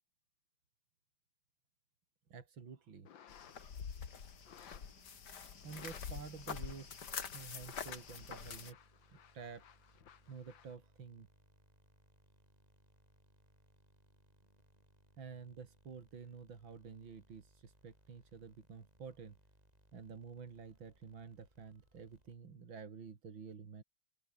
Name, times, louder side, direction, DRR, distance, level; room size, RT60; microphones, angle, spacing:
voice 1, 2.3-3.1 5.6-8.8 9.1-9.6 10.3-11.3 15.2-19.4 19.9-23.8, right 6 dB, 85° right, 3.3 m, -50 dB
sound 1, 3.0-3.7 4.4-5.0 5.6-6.0 6.4-6.5 6.9-10.8, left 9 dB, 80° left, 2.1 m, -60 dB
sound 2, 3.3-8.7, left 6 dB, 60° left, 2.5 m, -46 dB
sound 3, 3.9-22.7, right 1 dB, 20° right, 8.2 m, -69 dB
open air
omnidirectional pair, 2.1 m